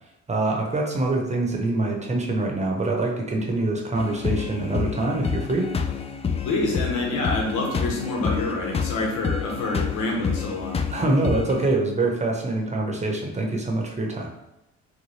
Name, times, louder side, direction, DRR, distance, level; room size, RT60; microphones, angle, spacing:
voice 1, 0.3-5.7 10.9-14.3, right 2 dB, 25° right, 0 dB, 0.8 m, -25 dB
sound 1, 3.9-11.7, left 6 dB, 20° left, 0.3 m, -29 dB
voice 2, 6.4-10.8, left 2 dB, 90° left, 0 dB, 1.0 m, -27 dB
4.1 x 2.2 x 3.2 m, 0.90 s
cardioid pair, 90°, 30 cm